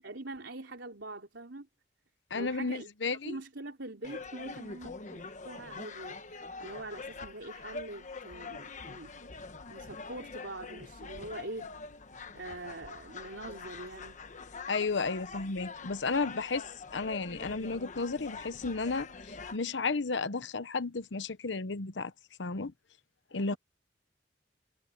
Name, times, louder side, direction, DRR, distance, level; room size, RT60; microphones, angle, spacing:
voice 1, 0.0-1.7 2.3-2.9 3.2-9.2 9.7-11.7 12.3-14.2 23.5-23.6, right 2 dB, 85° right, 3.5 m, -44 dB
voice 2, 2.3-3.4 14.7-22.1 22.4-22.7 23.3-23.5, left 4 dB, 85° left, 1.0 m, -33 dB
sound 1, 4.0-19.6, left 4 dB, 45° left, 1.2 m, -44 dB
head